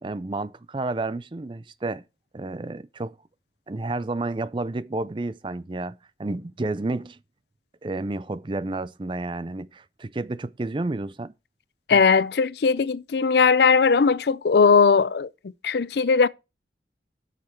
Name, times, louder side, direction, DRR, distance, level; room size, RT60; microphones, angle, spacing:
voice 1, 0.0-2.0 2.3-3.1 3.7-7.2 7.8-11.3, right 2 dB, 30° right, 0.4 m, -31 dB
voice 2, 11.9-15.3 15.6-16.3, left 5 dB, 70° left, 0.5 m, -19 dB
7.4 x 6.6 x 5.9 m
head